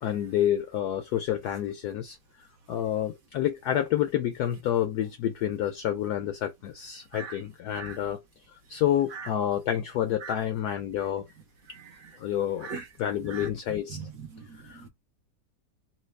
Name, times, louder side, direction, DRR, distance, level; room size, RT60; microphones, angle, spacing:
voice 1, 0.0-2.2 2.7-8.2 8.7-11.3 12.2-12.7 13.0-14.0 14.6-14.8, left 11 dB, 75° left, 0.9 m, -28 dB
voice 2, 11.7-12.1 12.6-12.9 13.2-13.5 13.9-14.9, right 5 dB, 60° right, 0.9 m, -40 dB
3.2 x 2.9 x 3.2 m
omnidirectional pair, 2.1 m